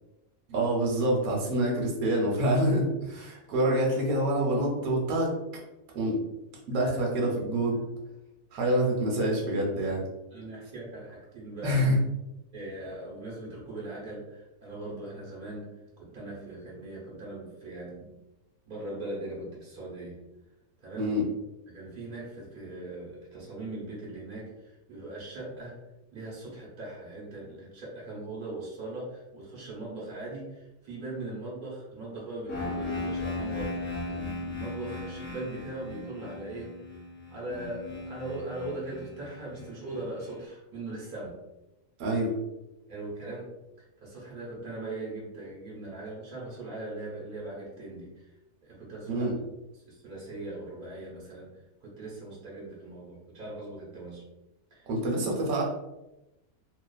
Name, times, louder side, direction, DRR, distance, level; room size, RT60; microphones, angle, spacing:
voice 1, 0.5-5.3 5.9-6.2 6.7-7.8 8.5-10.0 11.6-12.0 21.0-21.2 42.0-42.3 49.1-49.3 54.9-55.6, right 1 dB, 85° right, -2 dB, 1.1 m, -26 dB
voice 2, 10.3-11.8 12.5-15.7 16.0-18.1 18.6-20.2 20.8-21.1 21.7-25.8 26.1-33.8 34.1-36.7 37.3-41.4 42.9-43.5 44.0-48.2 48.6-49.3 49.7-51.5 51.8-54.2 54.7-54.9, right 2 dB, 40° right, -5 dB, 1.0 m, -40 dB
sound 1, 32.5-40.3, left 2 dB, 10° left, 0.9 m, -37 dB
2.4 x 2.4 x 2.3 m, 0.94 s
omnidirectional pair, 1.5 m